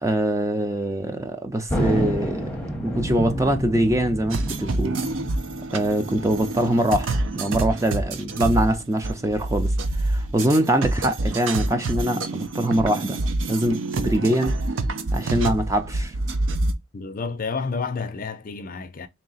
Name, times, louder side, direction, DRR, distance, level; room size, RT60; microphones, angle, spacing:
voice 1, 0.0-5.0 5.7-13.2 13.5-14.6 15.1-16.1, right 1 dB, 15° right, 0.5 m, -23 dB
Thunder, 1.7-8.5, equal, 5° left, 0.8 m, -30 dB
sound 1, 4.3-16.7, right 2 dB, 90° right, 0.6 m, -27 dB
voice 2, 16.9-19.1, left 4 dB, 45° left, 0.5 m, -30 dB
3.1 x 2.8 x 4.0 m
head